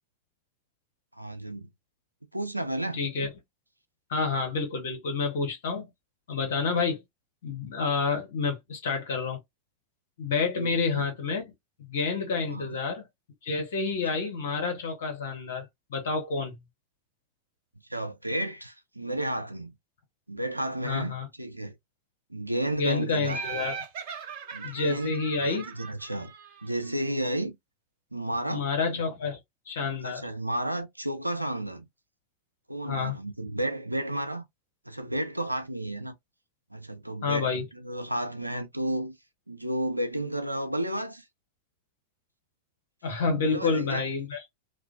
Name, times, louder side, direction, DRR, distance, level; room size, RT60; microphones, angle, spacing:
voice 1, 1.2-1.7 2.3-3.0 10.6-10.9 12.5-12.7 17.9-19.7 20.3-21.7 22.3-23.4 24.5-25.1 25.4-26.3 26.6-27.5 28.1-28.7 30.0-31.9 32.7-34.4 34.9-36.1 36.7-39.2 39.5-41.3 43.4-44.1, right 1 dB, 85° right, 0.4 m, -32 dB
voice 2, 2.9-3.3 4.1-5.9 6.3-7.0 7.4-9.4 10.2-11.4 11.9-13.0 13.4-16.6 20.8-21.3 22.7-23.8 24.6-25.6 28.5-29.4 29.7-30.2 32.9-33.1 37.2-37.6 43.0-44.4, left 4 dB, 60° left, 1.0 m, -29 dB
Laughter, 23.2-26.9, right 5 dB, 50° right, 0.7 m, -39 dB
2.4 x 2.1 x 2.4 m
figure-of-eight pair, 90°, 0 cm